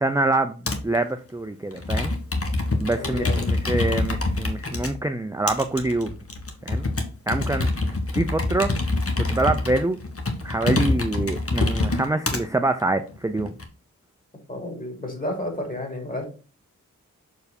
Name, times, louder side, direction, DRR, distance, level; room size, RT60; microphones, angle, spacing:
voice 1, 0.0-2.1 2.8-6.1 6.7-6.9 7.3-8.7 9.3-10.0 10.4-13.5, right 2 dB, 10° right, 7 dB, 0.6 m, -25 dB
Computer keyboard, 0.7-1.0 1.7-4.9 5.5-12.4 13.1-13.6, left 2 dB, 45° left, 1.7 m, -25 dB
voice 2, 3.0-3.5 14.5-16.2, left 1 dB, 25° left, 2 dB, 3.5 m, -31 dB
6.6 x 4.7 x 4.3 m, 0.36 s
cardioid pair, 55°, 31 cm